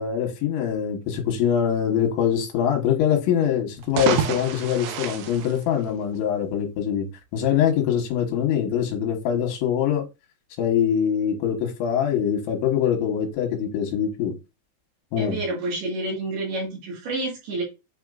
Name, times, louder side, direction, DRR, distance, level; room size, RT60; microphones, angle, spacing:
voice 1, 0.0-7.1 7.3-10.0 10.6-14.4 15.1-15.4, left 9 dB, 75° left, 3.4 m, -23 dB
sound 1, 3.7-6.4, right 9 dB, 80° right, 3.0 m, -29 dB
voice 2, 15.2-17.6, right 2 dB, 60° right, 3.5 m, -29 dB
8.4 x 4.3 x 2.6 m
omnidirectional pair, 5.6 m